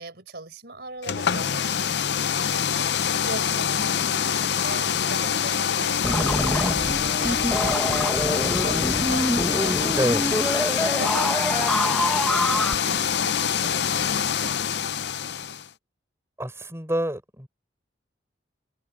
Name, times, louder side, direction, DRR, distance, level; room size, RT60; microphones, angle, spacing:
voice 1, 0.0-10.2 10.5-14.8, right 3 dB, 60° right, 4.6 m, -40 dB
sound 1, 1.0-15.7, left 8 dB, 65° left, 0.6 m, -25 dB
sound 2, 6.0-12.7, equal, 5° left, 1.2 m, -26 dB
sound 3, 8.8-14.4, left 4 dB, 25° left, 5.7 m, -43 dB
voice 2, 16.4-17.5, right 1 dB, 15° right, 6.5 m, -27 dB
open air
head